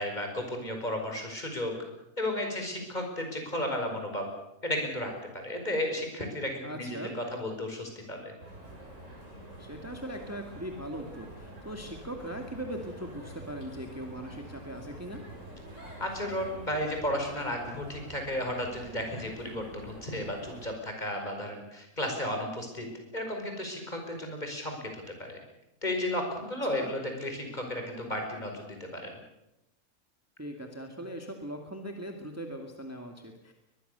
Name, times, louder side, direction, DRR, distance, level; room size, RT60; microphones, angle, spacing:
voice 1, 0.0-1.7 2.2-4.3 4.6-5.1 5.4-8.3 16.0-22.9 23.1-25.4 25.8-29.1, left 1 dB, 30° left, 3 dB, 5.3 m, -33 dB
voice 2, 6.6-7.2 9.6-15.2 26.6-26.9 30.4-33.5, right 1 dB, 10° right, 3 dB, 1.9 m, -40 dB
sound 1, 8.4-20.7, right 1 dB, 55° right, 7.8 m, -46 dB
22.5 x 21.5 x 6.8 m, 0.90 s
omnidirectional pair, 1.5 m